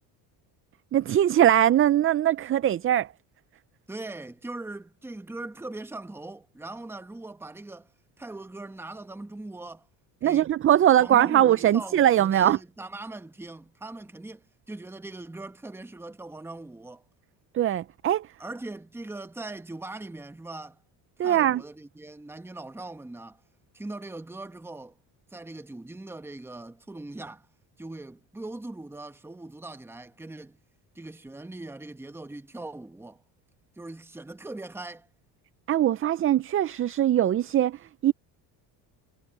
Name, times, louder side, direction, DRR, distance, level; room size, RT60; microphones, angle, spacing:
voice 1, 0.9-3.1 10.2-12.6 17.5-18.3 21.2-21.6 35.7-38.1, right 11 dB, 30° right, 0.5 m, -21 dB
voice 2, 3.9-9.9 10.2-10.5 11.0-17.0 18.4-20.8 21.2-23.4 23.7-25.0 25.3-27.5 27.8-30.6 30.9-33.2 33.8-35.1, right 2 dB, 5° right, 1.1 m, -40 dB
cardioid pair, 110°, 42 cm